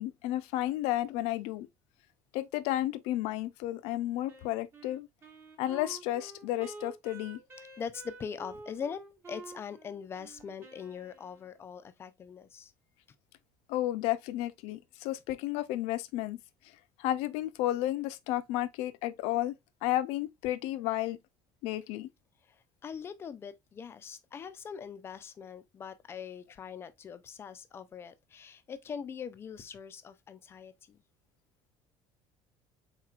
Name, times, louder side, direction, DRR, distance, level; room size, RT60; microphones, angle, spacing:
voice 1, 0.0-1.7 2.3-5.1 5.6-7.4 13.7-16.4 17.0-19.6 19.8-21.2 21.6-22.1, left 14 dB, 75° left, 0.5 m, -32 dB
Wind instrument woodwind instrument, 4.3-11.8, right 3 dB, 25° right, 1.1 m, -50 dB
voice 2, 7.8-9.0 9.3-12.7 22.5-22.6 22.8-31.0, left 7 dB, 25° left, 0.4 m, -42 dB
4.4 x 4.0 x 2.3 m
cardioid pair, 170°, 11 cm